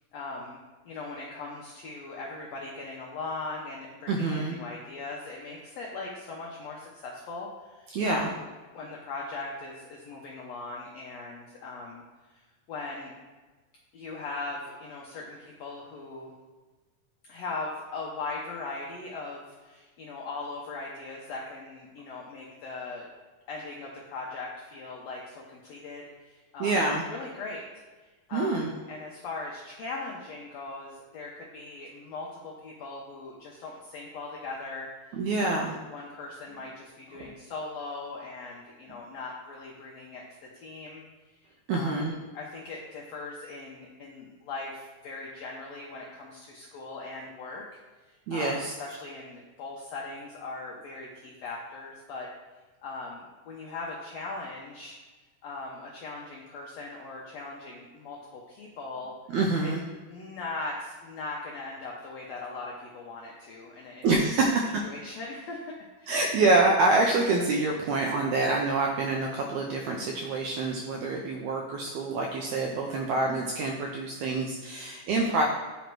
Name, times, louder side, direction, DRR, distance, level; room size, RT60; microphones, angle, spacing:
voice 1, 0.1-0.6 0.8-8.4 8.7-12.0 12.3-12.4 12.7-13.1 13.9-16.3 17.3-23.1 23.5-26.8 27.1-27.6 28.3-34.9 35.4-40.2 40.5-41.0 41.7-42.1 42.3-47.6 48.1-52.3 52.8-55.0 55.4-59.1 59.6-59.7 60.1-64.3 64.8-66.1 73.1-73.3, left 3 dB, 85° left, -2 dB, 1.5 m, -39 dB
voice 2, 4.1-4.6 7.9-8.3 26.6-27.0 28.3-28.7 35.1-35.7 41.7-42.1 48.3-48.7 59.3-59.8 64.0-64.8 66.1-75.4, right 3 dB, 80° right, 0 dB, 1.7 m, -26 dB
9.1 x 3.1 x 4.6 m, 1.3 s
omnidirectional pair, 3.8 m